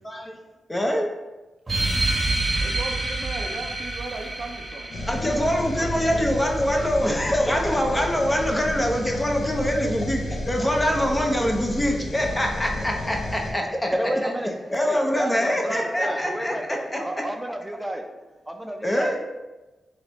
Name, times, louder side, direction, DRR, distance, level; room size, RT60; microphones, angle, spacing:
voice 1, 0.0-0.4 0.7-1.1 5.1-13.9 14.2-14.3 14.7-17.3 18.8-19.2, equal, 20° left, 1 dB, 0.7 m, -24 dB
sound 1, 1.7-6.7, right 2 dB, 35° right, 0.9 m, -28 dB
voice 2, 2.0-6.4 13.8-13.9, right 2 dB, 60° right, 3 dB, 0.5 m, -38 dB
sound 2, 4.9-13.5, left 1 dB, 70° left, 0.6 m, -32 dB
voice 3, 13.9-14.5 14.8-18.0 18.5-19.2, right 1 dB, 15° right, 5 dB, 0.6 m, -30 dB
3.2 x 3.1 x 3.9 m, 1.1 s
cardioid pair, 50°, 0 cm